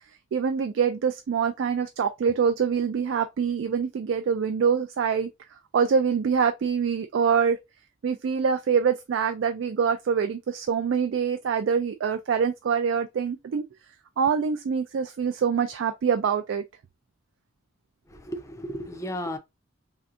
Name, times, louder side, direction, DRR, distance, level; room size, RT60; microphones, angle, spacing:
voice 1, 0.3-5.3 5.7-7.6 8.0-13.6 14.2-16.6, right 6 dB, 70° right, 0.3 m, -25 dB
voice 2, 18.1-19.4, equal, 15° left, 0.4 m, -34 dB
3.3 x 2.7 x 2.4 m
head